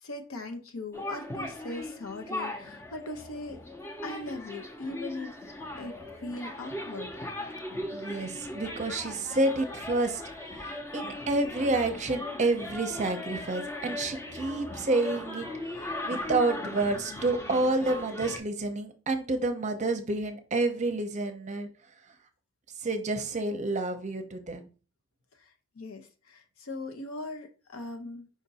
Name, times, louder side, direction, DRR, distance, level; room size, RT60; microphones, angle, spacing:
voice 1, 0.0-3.6 4.0-5.4 5.8-7.1 25.4-28.3, left 2 dB, 90° left, 0.7 m, -40 dB
sound 1, 0.9-18.4, left 1 dB, 15° left, 0.6 m, -38 dB
voice 2, 7.9-10.2 10.5-15.5 15.7-21.7 22.8-24.7, right 2 dB, 35° right, 0.6 m, -29 dB
5.1 x 2.6 x 4.0 m
head